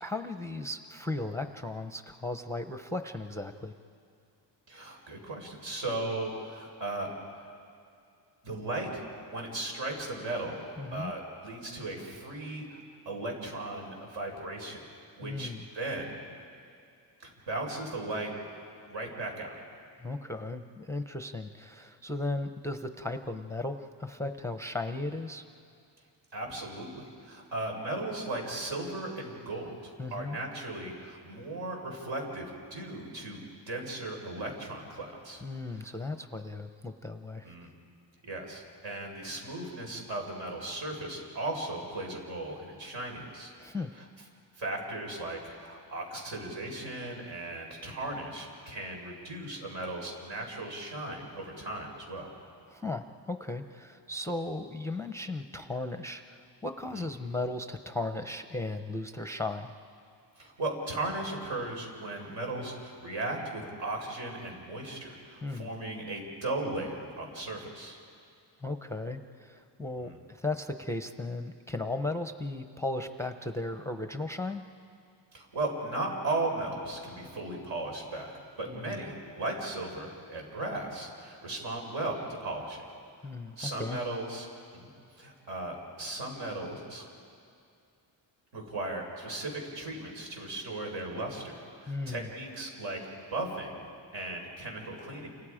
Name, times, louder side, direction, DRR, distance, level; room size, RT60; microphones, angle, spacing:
voice 1, 0.0-3.7 10.8-11.1 15.2-15.7 20.0-25.4 30.0-30.4 35.4-37.5 43.6-43.9 52.7-59.7 65.4-65.7 68.6-74.6 78.7-79.0 83.2-84.0 91.9-92.3, left 2 dB, 5° left, 7 dB, 0.5 m, -36 dB
voice 2, 4.7-7.5 8.4-9.0 9.3-12.8 13.0-14.8 15.2-16.2 17.2-18.3 18.9-19.6 26.3-35.4 35.7-36.0 37.4-37.7 38.3-43.5 44.0-44.1 44.5-52.3 56.9-57.1 60.4-68.0 70.0-70.2 75.3-78.3 78.6-82.8 83.6-84.5 84.7-84.9 85.2-87.1 88.5-93.0 93.3-93.8 94.1-95.3, right 2 dB, 75° right, 1 dB, 4.9 m, -37 dB
29.5 x 27.0 x 4.9 m, 2.4 s
wide cardioid pair, 175°, 44 cm